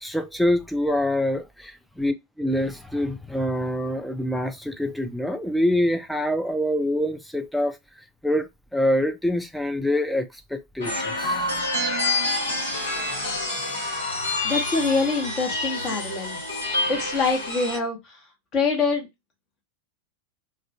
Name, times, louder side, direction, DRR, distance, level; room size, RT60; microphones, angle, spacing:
voice 1, 0.0-7.8 8.2-11.5, left 1 dB, ahead, 0.4 m, -25 dB
sound 1, 10.8-17.8, left 2 dB, 75° left, 1.2 m, -27 dB
voice 2, 14.4-16.4 16.9-18.0 18.5-19.1, left 4 dB, 35° left, 0.9 m, -24 dB
2.4 x 2.2 x 2.6 m
figure-of-eight pair, 90°, 0 cm